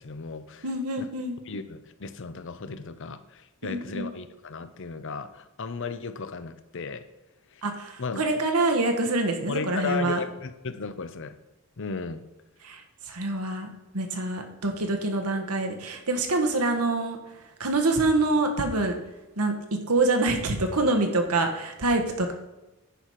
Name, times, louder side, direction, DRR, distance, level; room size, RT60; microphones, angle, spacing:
voice 1, 0.0-0.7 1.0-1.1 1.5-7.1 7.5-7.6 8.0-8.2 9.5-11.4 11.8-12.2, left 4 dB, 55° left, 11 dB, 0.7 m, -35 dB
voice 2, 0.6-1.4 3.6-4.1 7.6-10.2 12.6-13.7 13.9-19.0 19.4-19.5 19.9-22.3, right 2 dB, 85° right, 4 dB, 1.4 m, -26 dB
10.0 x 4.8 x 5.8 m, 1.0 s
head